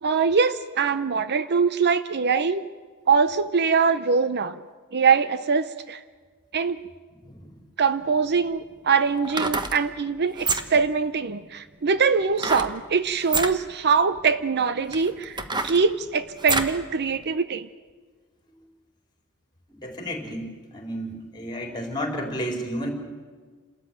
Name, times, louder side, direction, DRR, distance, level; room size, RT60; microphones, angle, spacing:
voice 1, 0.0-2.6 3.1-4.6 4.9-6.0 6.5-6.8 7.8-17.7, right 5 dB, 50° right, 13 dB, 0.7 m, -23 dB
sound 1, 8.0-8.1 9.2-9.8 10.3-10.9 12.4-12.7 13.2-13.5 14.3-14.4 14.9-16.8 17.2-17.3, right 3 dB, 20° right, 1.2 m, -27 dB
voice 2, 19.8-22.9, equal, 20° left, 2 dB, 4.4 m, -32 dB
29.0 x 13.5 x 9.1 m, 1.5 s
head